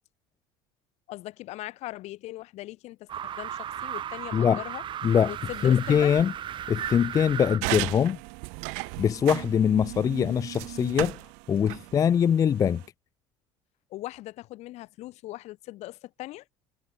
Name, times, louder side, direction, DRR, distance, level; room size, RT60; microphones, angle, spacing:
voice 1, 1.1-3.1 3.4-4.8 5.3-6.2 13.9-16.4, left 17 dB, 65° left, 2.5 m, -40 dB
sound 1, 3.1-7.6, right 10 dB, 40° right, 1.1 m, -35 dB
voice 2, 5.0-5.3 5.6-6.3 6.7-8.2 9.0-11.2 11.5-12.8, left 8 dB, 30° left, 0.4 m, -23 dB
sound 2, 7.6-12.9, right 39 dB, 80° right, 0.5 m, -36 dB
supercardioid pair, 110°, 13 cm